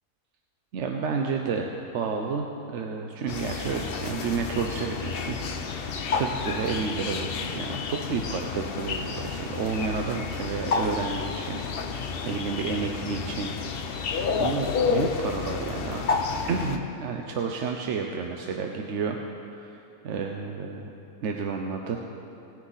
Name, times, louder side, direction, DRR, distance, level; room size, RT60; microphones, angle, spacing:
voice 1, 0.7-13.5 14.0-16.1 16.5-19.2 19.6-20.9 21.2-22.0, right 5 dB, 60° right, 2 dB, 0.9 m, -31 dB
sound 1, 3.3-16.8, left 5 dB, 50° left, 0.7 m, -30 dB
18.0 x 9.8 x 4.0 m, 2.8 s
omnidirectional pair, 1.5 m